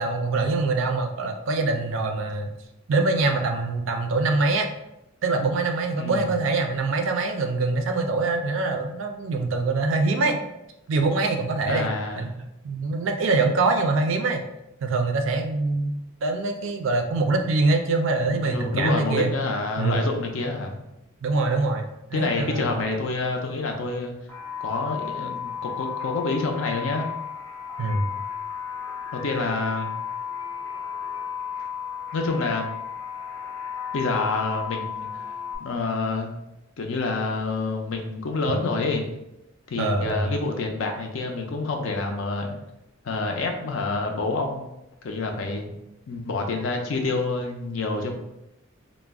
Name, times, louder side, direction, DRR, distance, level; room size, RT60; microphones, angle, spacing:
voice 1, 0.0-2.5 2.9-4.7 5.2-10.4 10.9-11.9 12.2-14.4 14.8-15.9 16.2-19.3 19.8-20.1 21.2-22.8 27.8-28.1 39.8-40.3, right 3 dB, 65° right, 5 dB, 0.4 m, -24 dB
voice 2, 6.0-6.3 11.7-12.3 18.5-20.8 22.1-24.1 24.6-27.1 29.1-29.9 32.1-32.7 33.9-35.1 35.6-36.3 36.8-39.0 39.7-42.5 43.0-44.7 45.0-45.7 46.1-48.1, left 3 dB, 65° left, 2 dB, 0.4 m, -27 dB
sound 1, 24.3-35.6, left 7 dB, 10° left, 0.4 m, -34 dB
2.3 x 2.0 x 3.4 m, 0.89 s
head